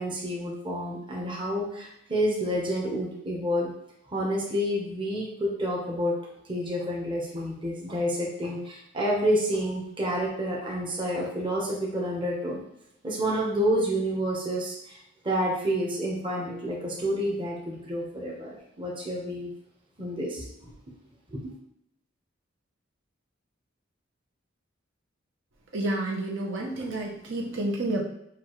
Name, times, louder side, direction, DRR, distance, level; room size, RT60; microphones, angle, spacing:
voice 1, 0.0-3.7 4.1-6.1 6.5-12.6 13.0-19.5 20.0-20.7 21.3-21.4, equal, 25° right, -3 dB, 0.9 m, -29 dB
voice 2, 25.7-28.0, right 1 dB, 70° right, -1 dB, 0.8 m, -30 dB
6.7 x 2.4 x 3.1 m, 0.78 s
head